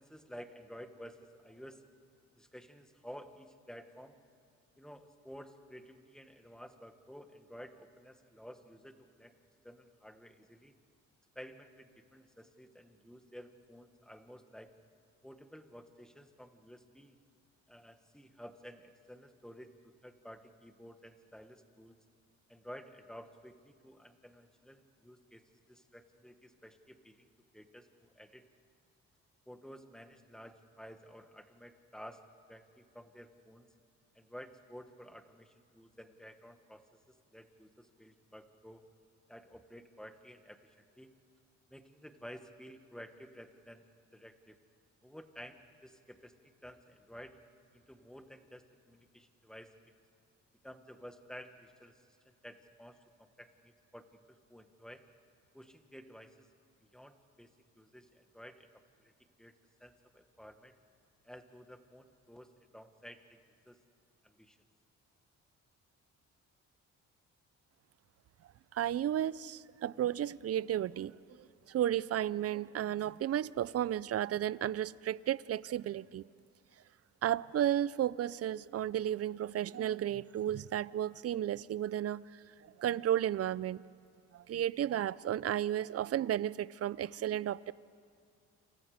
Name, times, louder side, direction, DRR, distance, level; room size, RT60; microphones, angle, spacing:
voice 1, 0.0-1.8 2.3-4.2 4.8-9.3 9.6-10.8 11.4-14.7 15.2-17.2 17.7-22.0 22.5-25.4 25.7-28.5 29.5-32.2 32.5-33.7 34.2-36.9 37.3-38.8 39.3-41.1 41.7-43.8 44.1-44.6 45.0-47.4 47.7-49.7 50.6-51.9 52.4-55.1 55.5-56.5 56.9-57.5 57.8-58.7 59.0-59.1 59.4-59.5 59.8-60.7 61.2-63.4 63.7-63.8 64.2-64.6, equal, ahead, 7 dB, 1.8 m, -52 dB
voice 2, 68.7-76.2 77.2-83.8 84.3-87.7, right 11 dB, 55° right, 19 dB, 0.6 m, -33 dB
29.0 x 27.5 x 5.1 m, 2.4 s
cardioid pair, 90°, 30 cm